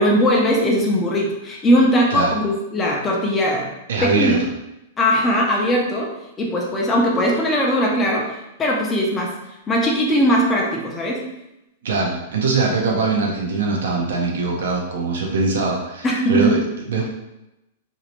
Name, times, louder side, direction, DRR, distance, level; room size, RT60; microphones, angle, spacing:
voice 1, 0.0-3.7 4.0-4.4 5.0-6.1 6.4-9.3 9.7-11.2 16.0-16.6, equal, 15° left, -1 dB, 0.4 m, -19 dB
voice 2, 3.9-4.4 11.8-16.6 16.9-17.1, right 3 dB, 85° right, -1 dB, 0.5 m, -22 dB
2.6 x 2.1 x 2.8 m, 0.92 s
supercardioid pair, 160°, 0 cm